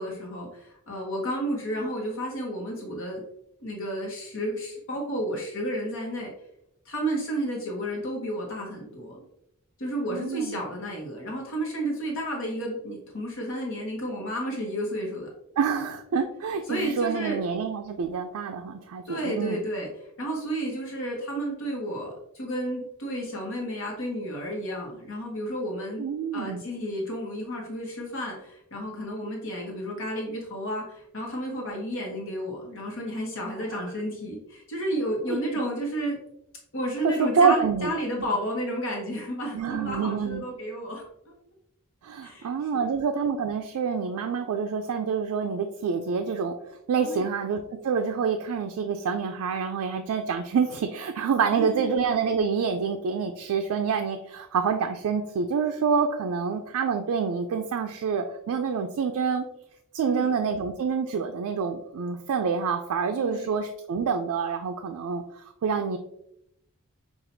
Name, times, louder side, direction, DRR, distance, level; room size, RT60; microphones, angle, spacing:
voice 1, 0.0-3.2 3.6-6.3 6.9-9.2 9.8-15.3 16.7-17.4 19.1-19.9 20.2-26.0 26.3-36.2 36.7-41.3 42.2-43.0 47.0-47.2 51.5-51.9 60.0-60.3 63.2-63.5, equal, 60° left, -1 dB, 0.9 m, -32 dB
voice 2, 10.1-10.6 15.6-19.6 26.0-26.6 33.7-33.8 35.3-35.4 37.0-38.0 39.5-40.4 42.0-46.5 46.9-59.4 59.9-65.2 65.6-66.0, right 6 dB, 80° right, 5 dB, 0.3 m, -27 dB
5.8 x 2.4 x 2.6 m, 0.77 s
head